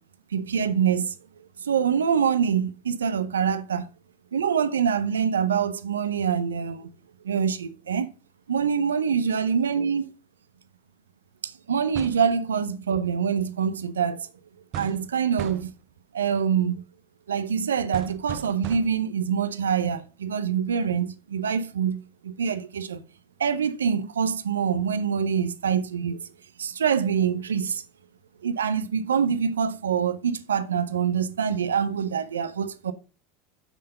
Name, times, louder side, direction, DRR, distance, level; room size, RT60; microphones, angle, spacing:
voice 1, 0.3-1.1 1.6-3.9 4.3-6.9 7.2-8.1 8.5-10.0 11.4-14.3 14.7-15.7 16.1-16.8 17.3-23.0 23.4-26.2 26.6-27.8 28.4-32.9, right 7 dB, 85° right, 0.7 m, -25 dB
sound 1, 11.9-12.3 14.7-15.1 15.4-15.8 17.9-19.1, right 11 dB, 50° right, 0.8 m, -37 dB
9.2 x 5.7 x 5.3 m
hypercardioid pair, 85°, 0 cm